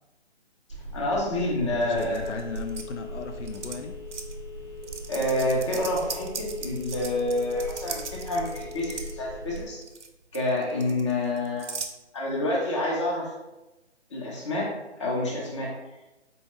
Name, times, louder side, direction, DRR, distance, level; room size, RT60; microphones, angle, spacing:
Telephone, 0.7-9.7, left 1 dB, 10° right, 0.5 m, -39 dB
voice 1, 0.9-2.4 5.1-9.8 10.3-11.7 12.1-13.3 14.1-14.7 15.0-15.7, left 1 dB, 25° left, -3 dB, 0.7 m, -28 dB
voice 2, 1.7-3.9, left 4 dB, 80° left, 5 dB, 0.5 m, -36 dB
sound 1, 2.0-2.8 3.4-3.7 4.1-4.3 4.8-9.1 9.6-10.1 10.3-11.9, right 5 dB, 80° right, 0.6 m, -38 dB
4.0 x 2.2 x 3.6 m, 1.0 s
figure-of-eight pair, 155°, 35 cm